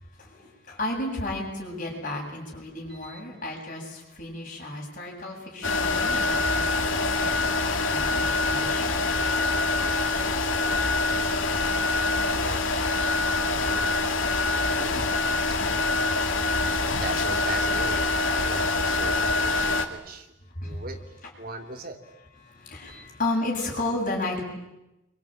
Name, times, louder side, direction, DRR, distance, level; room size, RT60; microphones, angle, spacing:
voice 1, 0.2-7.3 7.6-9.0 20.5-20.8 22.4-24.4, left 2 dB, 40° left, 0 dB, 7.9 m, -33 dB
voice 2, 2.9-3.2 12.3-13.2 13.5-14.2 14.8-15.1 17.0-20.3 20.6-21.0 21.4-22.0 22.9-23.1, right 2 dB, 50° right, 4 dB, 3.1 m, -38 dB
sound 1, 5.6-19.9, left 3 dB, 90° left, 2.6 m, -25 dB
27.0 x 24.0 x 9.1 m, 0.94 s
head